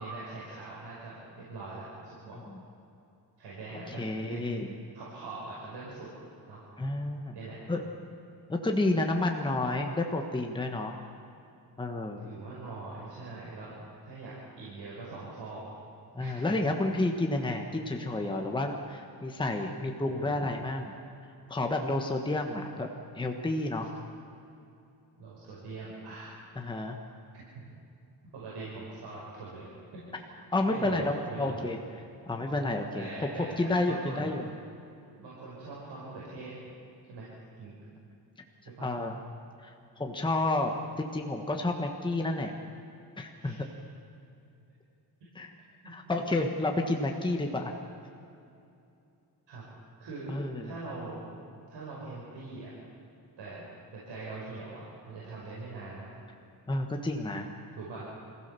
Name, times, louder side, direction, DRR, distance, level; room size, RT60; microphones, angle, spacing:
voice 1, 0.0-2.4 3.4-4.5 4.9-6.1 6.5-6.6 7.3-7.6 12.2-13.7 14.0-15.7 16.2-16.7 20.0-20.6 25.2-26.3 27.3-27.6 28.3-30.0 30.6-31.7 33.0-34.3 35.2-36.5 37.1-37.3 37.6-37.8 38.7-38.9 43.4-43.7 45.8-45.9 49.5-49.6 50.0-50.3 50.6-51.2 51.7-52.7 53.4-53.7 53.9-56.1 57.8-58.1, right 3 dB, 80° right, -6 dB, 5.5 m, -42 dB
voice 2, 3.9-4.7 6.8-7.3 7.7-7.8 8.5-11.0 11.8-12.2 16.1-20.9 21.5-22.9 23.1-23.9 26.6-27.0 30.5-31.8 32.3-34.5 38.8-39.2 39.6-39.7 40.0-40.7 41.0-42.5 43.2-43.6 45.3-45.5 45.8-47.7 50.3-50.7 56.7-57.5, left 2 dB, 10° left, 3 dB, 1.3 m, -30 dB
26.5 x 16.0 x 6.9 m, 2.6 s
wide cardioid pair, 135°, 41 cm